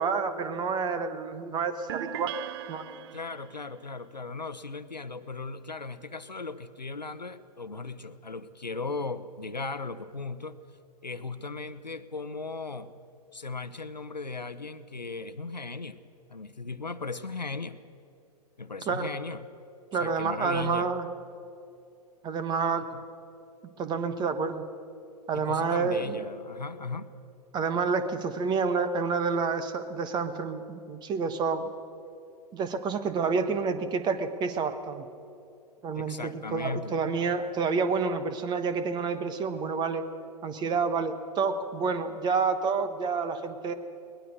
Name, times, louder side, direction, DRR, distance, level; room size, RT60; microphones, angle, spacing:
voice 1, 0.0-2.3 2.7-3.0 18.9-19.1 19.9-21.1 22.2-22.9 23.8-24.6 25.3-26.2 27.5-31.7 32.5-35.0 35.8-40.0 40.4-43.7, right 5 dB, 20° right, 11 dB, 1.2 m, -29 dB
sound 1, 1.9-3.7, right 13 dB, 40° right, 0.4 m, -39 dB
voice 2, 3.1-10.6 11.0-13.0 13.3-16.0 16.3-17.8 18.6-19.4 20.0-20.9 22.9-23.0 25.3-27.1 35.9-37.0, left 3 dB, 85° left, 12 dB, 1.0 m, -37 dB
22.0 x 20.0 x 6.5 m, 2.6 s
figure-of-eight pair, 110°, 21 cm